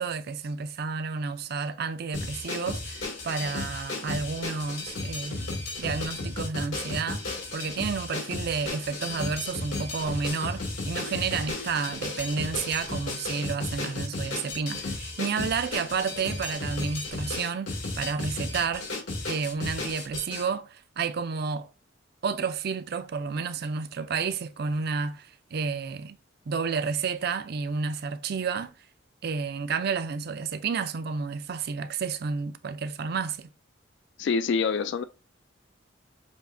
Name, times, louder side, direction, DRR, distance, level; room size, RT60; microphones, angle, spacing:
voice 1, 0.0-5.5 5.8-18.9 19.3-21.7 22.2-26.2 26.5-28.7 29.2-33.5, right 5 dB, 55° right, 0.4 m, -31 dB
sound 1, 2.1-20.5, left 2 dB, 90° left, 2.4 m, -34 dB
voice 2, 34.2-35.0, left 5 dB, 60° left, 0.3 m, -26 dB
7.0 x 2.7 x 2.6 m
head